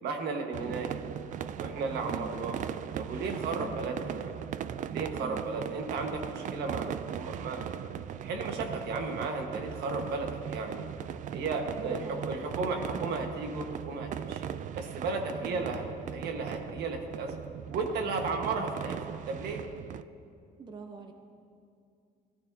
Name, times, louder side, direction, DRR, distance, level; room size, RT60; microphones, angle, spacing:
voice 1, 0.0-0.9 1.6-2.6 2.9-4.3 4.9-7.6 8.2-10.9 11.3-14.5 14.7-17.3 17.7-19.6, right 3 dB, 75° right, 4 dB, 1.4 m, -34 dB
sound 1, 0.5-20.0, right 9 dB, 50° right, 0.4 m, -39 dB
voice 2, 11.8-12.3 15.4-15.7 20.6-21.1, right 3 dB, 25° right, 5 dB, 0.7 m, -43 dB
15.5 x 14.0 x 2.7 m, 2.4 s
cardioid pair, 110°, 17 cm